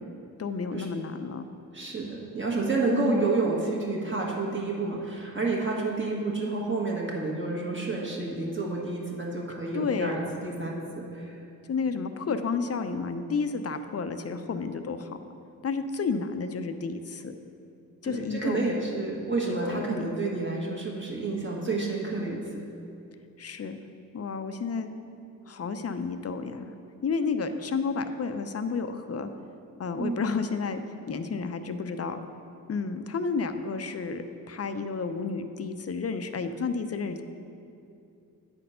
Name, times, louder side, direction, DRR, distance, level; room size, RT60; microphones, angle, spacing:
voice 1, 0.4-1.4 2.9-3.3 9.7-10.2 11.7-15.2 15.6-17.3 18.0-18.6 19.4-19.9 23.4-23.8 24.1-24.9 25.5-26.7 27.0-29.3 29.8-30.8 31.1-32.2 32.7-37.2, left 5 dB, 45° left, 9 dB, 0.6 m, -31 dB
voice 2, 1.7-11.4 18.0-22.4 30.0-30.2, right 3 dB, 35° right, -3 dB, 1.6 m, -29 dB
8.9 x 4.3 x 5.6 m, 2.6 s
cardioid pair, 55°, 36 cm